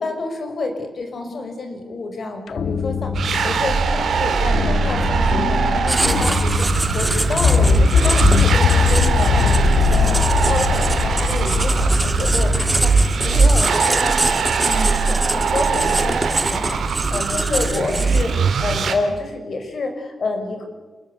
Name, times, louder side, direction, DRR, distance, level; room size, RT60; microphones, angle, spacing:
voice 1, 0.0-14.4 14.7-18.3 18.6-20.7, left 3 dB, 55° left, 5 dB, 5.5 m, -28 dB
sound 1, 2.5-13.8, left 6 dB, 80° left, 1.3 m, -21 dB
sound 2, 3.1-18.9, right 5 dB, 75° right, 3.0 m, -20 dB
Writing, 5.9-18.5, right 2 dB, 15° right, 1.9 m, -26 dB
28.0 x 20.5 x 8.3 m, 1.2 s
wide cardioid pair, 105°, 0 cm